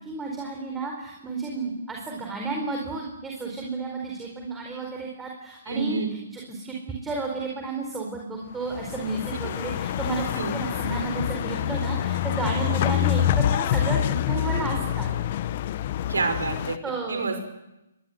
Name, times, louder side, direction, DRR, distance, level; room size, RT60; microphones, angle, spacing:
voice 1, 0.0-6.8 7.0-15.1 16.8-17.2, right 3 dB, 10° right, 0 dB, 4.6 m, -32 dB
voice 2, 5.7-6.1 9.4-9.6 10.4-10.5 16.1-16.8 17.1-17.4, right 4 dB, 75° right, 7 dB, 5.8 m, -27 dB
sound 1, 8.7-16.8, left 11 dB, 45° left, 1.2 m, -26 dB
27.5 x 21.5 x 8.0 m, 0.94 s
figure-of-eight pair, 135°, 0 cm